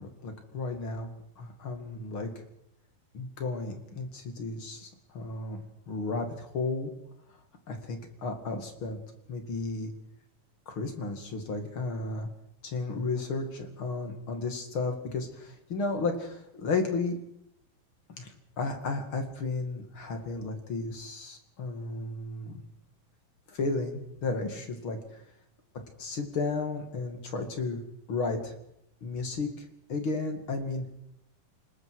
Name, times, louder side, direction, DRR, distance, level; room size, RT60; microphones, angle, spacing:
voice 1, 0.0-2.3 3.1-5.6 5.9-6.9 7.7-9.0 9.3-9.9 10.7-12.3 12.6-17.2 18.2-22.6 23.5-25.2 26.0-27.8 28.1-28.5 29.0-30.9, left 3 dB, 40° left, 5 dB, 2.6 m, -33 dB
28.0 x 19.5 x 4.8 m, 0.80 s
omnidirectional pair, 4.1 m